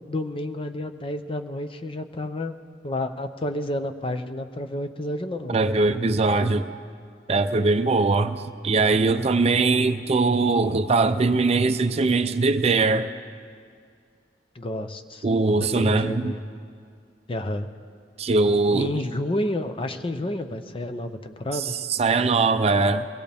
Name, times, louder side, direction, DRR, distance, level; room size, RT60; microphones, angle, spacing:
voice 1, 0.1-2.5 2.8-5.6 14.5-15.2 15.6-16.4 17.3-17.7 18.7-21.7, left 1 dB, 30° left, 0.7 m, -30 dB
voice 2, 5.5-6.7 7.3-13.1 15.2-16.3 18.2-18.9 21.5-23.1, right 3 dB, 35° right, 0.5 m, -21 dB
23.5 x 18.0 x 3.5 m
head